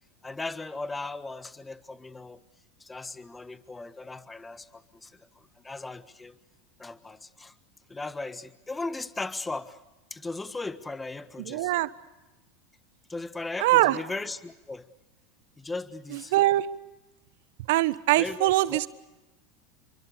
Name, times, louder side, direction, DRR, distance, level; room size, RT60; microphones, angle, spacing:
voice 1, 0.2-2.4 2.8-5.1 5.6-6.3 6.8-7.5 7.9-9.8 10.1-11.7 13.1-14.8 15.6-16.3 18.2-18.8, left 3 dB, 15° left, 13 dB, 1.4 m, -37 dB
voice 2, 11.4-11.9 13.6-14.0 16.1-16.7 17.7-18.9, right 17 dB, 65° right, 16 dB, 1.1 m, -23 dB
29.5 x 24.0 x 6.7 m, 1.1 s
hypercardioid pair, 85°, 0 cm